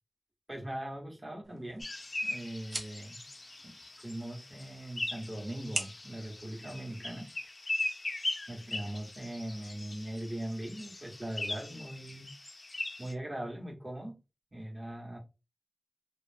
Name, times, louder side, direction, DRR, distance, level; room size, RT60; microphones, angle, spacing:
voice 1, 0.5-1.9 2.2-3.2 3.6-7.3 8.5-12.3 13.0-14.2 14.5-15.2, right 1 dB, 35° right, 1.0 m, -40 dB
sound 1, 1.4-7.5, right 2 dB, 65° right, 0.6 m, -45 dB
sound 2, 1.8-13.1, left 2 dB, 50° left, 0.5 m, -40 dB
2.3 x 2.0 x 3.2 m
wide cardioid pair, 55°, 0 cm